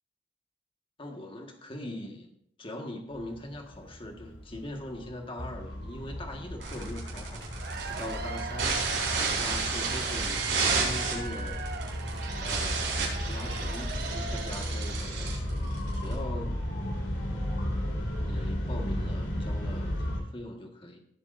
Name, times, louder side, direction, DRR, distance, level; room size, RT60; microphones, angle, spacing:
voice 1, 1.0-2.3 2.6-8.8 9.2-11.6 12.3-15.7 15.9-16.6 18.2-21.0, left 1 dB, 30° left, 3 dB, 1.6 m, -41 dB
sound 1, 3.1-20.2, equal, 70° left, 3.9 m, -35 dB
sound 2, 6.6-16.1, right 4 dB, 85° right, 4.7 m, -32 dB
Cheering / Applause / Crowd, 7.4-15.1, right 4 dB, 60° right, 1.1 m, -40 dB
17.5 x 8.2 x 2.6 m, 0.71 s
head